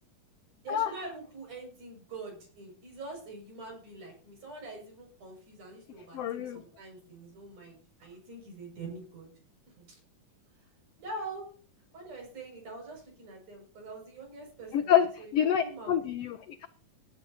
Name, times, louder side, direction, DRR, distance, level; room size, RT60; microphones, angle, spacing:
voice 1, 0.6-9.3 9.7-10.0 10.5-10.7 11.0-11.4 11.9-15.9, right 2 dB, 65° right, 1 dB, 7.8 m, -44 dB
voice 2, 6.1-6.6 14.7-16.7, left 9 dB, 85° left, 8 dB, 1.4 m, -27 dB
20.5 x 11.5 x 2.8 m, 0.43 s
omnidirectional pair, 3.9 m